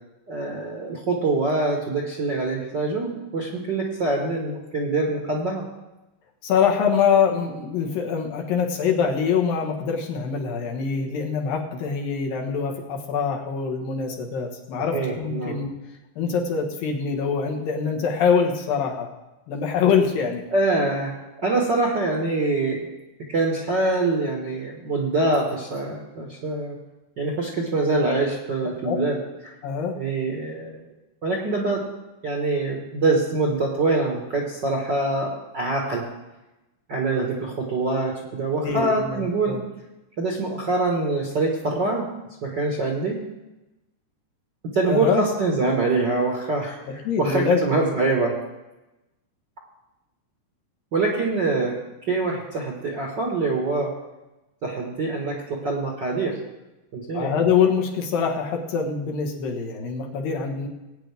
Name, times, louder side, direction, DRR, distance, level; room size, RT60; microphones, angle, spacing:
voice 1, 0.3-5.6 14.9-15.6 20.5-22.9 23.3-26.8 27.2-29.2 29.4-29.5 29.9-30.9 31.2-31.8 32.2-36.0 36.9-39.6 40.2-42.0 42.4-43.2 44.7-46.8 47.2-48.3 50.9-51.8 52.1-53.9 54.6-56.4 56.9-57.3, right 3 dB, 50° right, -2 dB, 1.3 m, -24 dB
voice 2, 6.4-15.7 16.2-19.1 19.5-20.4 28.8-29.0 29.6-30.0 38.6-39.6 44.9-45.2 46.9-47.6 57.1-60.7, left 6 dB, 75° left, 1 dB, 3.2 m, -24 dB
19.0 x 9.1 x 3.5 m, 1.0 s
omnidirectional pair, 4.1 m